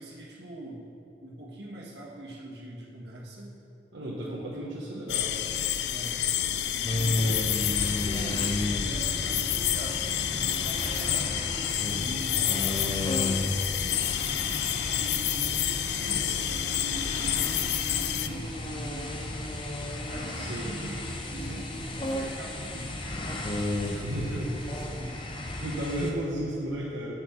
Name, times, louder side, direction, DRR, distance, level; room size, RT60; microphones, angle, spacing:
voice 1, 0.0-3.5 4.0-4.9 5.9-6.2 6.7-11.5 11.9-14.5 14.9-19.4 19.9-23.0 23.3-23.4 23.7-25.1, right 1 dB, 70° right, -4 dB, 1.9 m, -43 dB
voice 2, 3.9-5.4 20.4-20.7 24.0-24.6 25.0-25.1 25.5-27.1, right 1 dB, 90° right, -5 dB, 1.2 m, -34 dB
sound 1, 5.1-18.3, left 11 dB, 70° left, 0.4 m, -29 dB
sound 2, 6.9-26.1, left 1 dB, 30° left, 0.8 m, -33 dB
7.8 x 7.5 x 6.1 m, 2.6 s
head